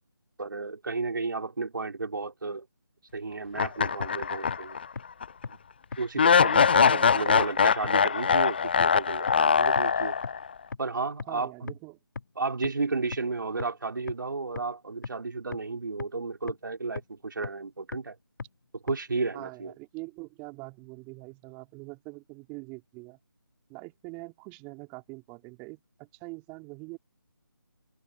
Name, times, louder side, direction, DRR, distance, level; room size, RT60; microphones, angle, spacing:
voice 1, 0.4-2.7 3.1-4.8 5.5-5.6 6.0-10.2 10.8-11.7 12.3-18.2 18.8-19.7, right 3 dB, 60° right, 5.1 m, -33 dB
sound 1, 3.5-4.9 5.2-5.3 6.2-10.5, left 6 dB, 25° left, 0.4 m, -22 dB
sound 2, 4.0-4.1 4.5-4.6 5.0-5.1 5.4-5.5 5.9-6.0 6.4-6.5 6.9-7.0 7.4-7.5 7.8-7.9 8.3-8.4 8.8-8.9 9.3-9.4 9.8-9.9 10.2-10.3 10.7-10.8 11.2-11.3 11.7-11.8 12.2-12.3 12.6-12.7 13.1-13.2 13.6-13.7 14.1-14.2 14.6-14.7 15.0-15.1 15.5-15.6 16.0-16.1 16.5-16.6 17.0-17.1 17.4-17.5 17.9-18.0 18.4-18.5 18.9-19.0, left 4 dB, 55° left, 1.2 m, -35 dB
voice 2, 11.3-12.0 19.3-23.2 23.7-27.0, right 28 dB, 15° right, 3.4 m, -44 dB
open air
figure-of-eight pair, 160°, 12 cm